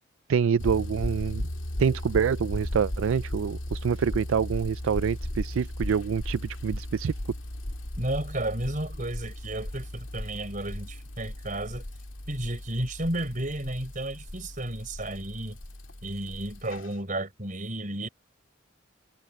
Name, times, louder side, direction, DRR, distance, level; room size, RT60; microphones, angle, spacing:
voice 1, 0.3-1.4 1.8-7.1, right 7 dB, 75° right, 0.4 m, -26 dB
sound 1, 0.6-16.9, left 1 dB, 70° left, 2.3 m, -36 dB
voice 2, 8.0-11.8 12.3-15.6 16.0-18.1, right 1 dB, 40° right, 4.6 m, -32 dB
head